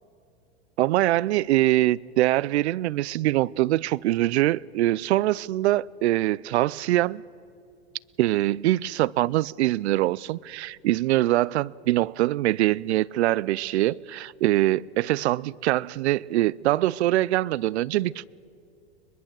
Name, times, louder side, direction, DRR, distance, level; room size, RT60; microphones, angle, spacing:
voice 1, 0.8-7.2 8.2-18.2, right 16 dB, 80° right, 0.5 m, -23 dB
22.0 x 21.0 x 7.5 m
hypercardioid pair, 115°, 33 cm